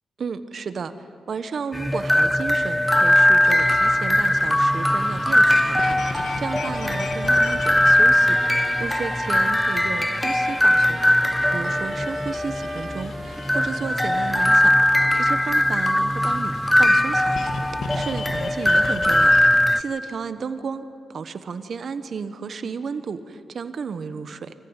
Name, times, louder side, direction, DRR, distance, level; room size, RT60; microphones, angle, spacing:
voice 1, 0.2-11.2 11.5-24.5, right 5 dB, 60° right, 11 dB, 1.1 m, -33 dB
sound 1, 1.7-19.8, left 1 dB, 10° left, 0.6 m, -20 dB
sound 2, 3.4-19.5, left 5 dB, 75° left, 1.8 m, -38 dB
sound 3, 4.6-15.6, right 2 dB, 25° right, 0.8 m, -38 dB
23.0 x 15.0 x 9.0 m, 2.5 s
cardioid pair, 75°, 0 cm